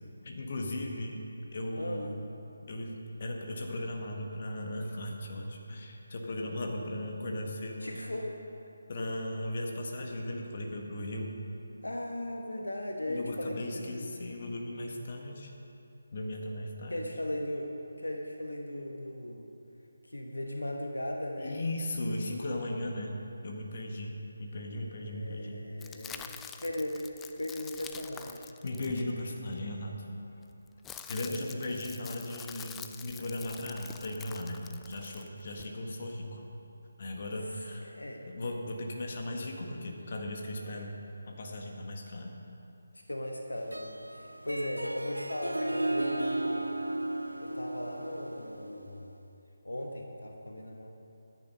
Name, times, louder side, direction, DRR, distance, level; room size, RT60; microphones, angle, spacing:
voice 1, 0.2-1.3 1.5-2.2 2.7-8.0 8.9-11.4 13.1-15.5 16.1-17.0 21.4-23.2 23.4-25.6 28.6-30.0 31.1-36.4 37.0-37.9 38.3-41.0 41.2-42.4, left 1 dB, 40° left, 1 dB, 1.6 m, -37 dB
voice 2, 1.8-2.2 7.8-8.4 11.8-14.1 16.9-19.5 20.1-21.6 25.0-28.5 35.0-35.2 37.8-38.2 42.9-46.7 47.4-49.1 49.6-50.9, left 1 dB, 75° left, 2 dB, 1.2 m, -37 dB
sound 1, 25.8-29.5 30.4-35.7, left 8 dB, 10° left, 0.3 m, -47 dB
Harp, 43.6-49.1, right 1 dB, 80° right, 0.6 m, -35 dB
13.0 x 9.9 x 5.4 m, 2.8 s
figure-of-eight pair, 150°, 0 cm